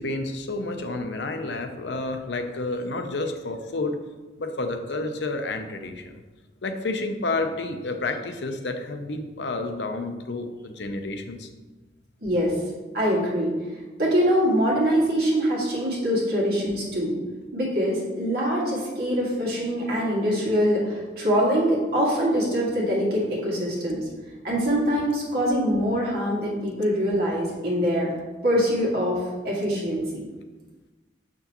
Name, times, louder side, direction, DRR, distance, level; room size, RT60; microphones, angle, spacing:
voice 1, 0.0-4.0 4.4-6.1 6.6-11.5, left 2 dB, 75° left, 6 dB, 0.6 m, -30 dB
voice 2, 12.2-12.5 12.9-13.5 14.0-17.2 17.5-24.0 24.4-28.1 28.4-30.2, equal, 55° right, -5 dB, 2.1 m, -24 dB
6.6 x 6.0 x 3.0 m, 1.2 s
head